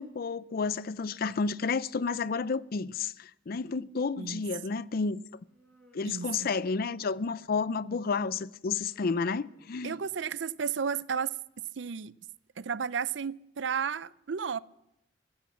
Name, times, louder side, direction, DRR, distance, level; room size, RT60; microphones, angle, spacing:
voice 1, 0.0-5.2 5.9-10.0, left 4 dB, 55° left, 0.5 m, -31 dB
Human voice, 5.5-7.7 8.6-10.5, equal, 5° left, 4.8 m, -63 dB
voice 2, 6.0-6.5 9.8-11.4 11.8-12.1 12.6-14.6, right 6 dB, 70° right, 0.5 m, -33 dB
16.0 x 12.0 x 7.2 m
head